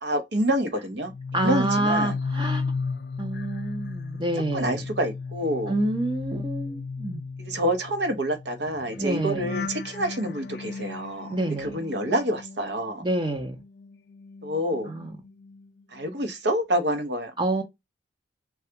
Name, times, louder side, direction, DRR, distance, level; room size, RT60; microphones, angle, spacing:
voice 1, 0.0-1.1 1.4-2.1 4.5-5.7 7.4-13.0 14.4-14.9 15.9-17.3, right 1 dB, 65° right, 0.7 m, -27 dB
sound 1, 1.0-13.3 13.6-15.7 16.0-16.3, left 4 dB, 55° left, 0.3 m, -35 dB
voice 2, 1.3-2.6 3.2-4.8 5.7-7.2 9.0-9.5 11.3-11.8 13.0-13.6 14.9-15.2 17.4-17.6, right 1 dB, 25° right, 0.6 m, -27 dB
3.3 x 2.3 x 2.8 m
head